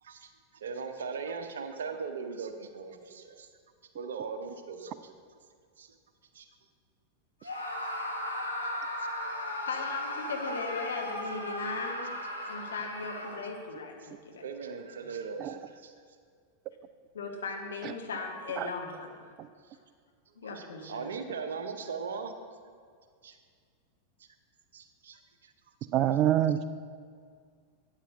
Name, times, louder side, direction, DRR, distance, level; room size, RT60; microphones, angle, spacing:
voice 1, 0.0-3.5 3.9-5.1 5.8-6.0 6.3-6.5 7.4-7.5 9.0-9.1 12.4-12.5 14.0-14.1 14.4-15.9 19.6-19.8 20.3-22.3 23.2-23.4 24.2-24.3 24.7-25.5, right 5 dB, 65° right, 7 dB, 0.7 m, -39 dB
Screaming, 7.4-13.7, left 1 dB, 90° left, 1.2 m, -36 dB
voice 2, 9.6-12.1 12.5-14.4 17.1-19.3 20.4-21.1, left 4 dB, 65° left, 2 dB, 1.2 m, -37 dB
voice 3, 25.9-26.7, right 11 dB, 35° right, 13 dB, 0.3 m, -26 dB
12.5 x 9.5 x 2.6 m, 2.1 s
figure-of-eight pair, 90°, 0 cm